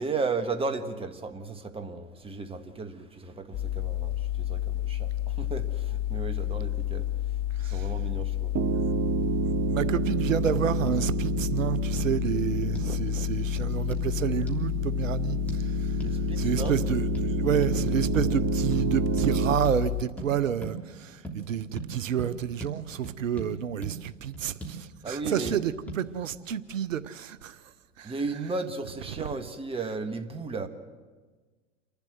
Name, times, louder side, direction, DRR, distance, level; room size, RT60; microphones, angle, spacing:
voice 1, 0.0-7.1 7.6-8.5 16.0-16.8 25.0-25.6 28.0-30.7, right 4 dB, 15° right, 7 dB, 1.6 m, -34 dB
sound 1, 3.5-20.0, left 13 dB, 45° left, 1.4 m, -30 dB
Piano, 8.5-19.6, right 10 dB, 30° right, 1.0 m, -31 dB
voice 2, 9.5-16.0 16.4-27.6 28.0-28.2, right 9 dB, 80° right, 15 dB, 0.8 m, -29 dB
sound 2, 10.5-10.6 10.9-11.0 11.4-11.5 12.0-12.2 12.8-12.9 13.6-14.1 14.5-14.6 15.5-15.6 16.0-16.2 16.7-16.8 17.2-17.3 17.6-17.8 18.1-18.3 18.7-18.9 19.2-19.3 19.7-19.8 20.2-20.3 20.6-20.8 21.2-21.4 21.8-21.9 22.2-22.3 22.6-22.7 23.0-23.5 23.8-23.9 24.3-24.8 25.5-25.6 25.9-26.0, right 2 dB, 5° left, 3.3 m, -38 dB
28.5 x 12.0 x 7.7 m, 1.4 s
hypercardioid pair, 95°, 38 cm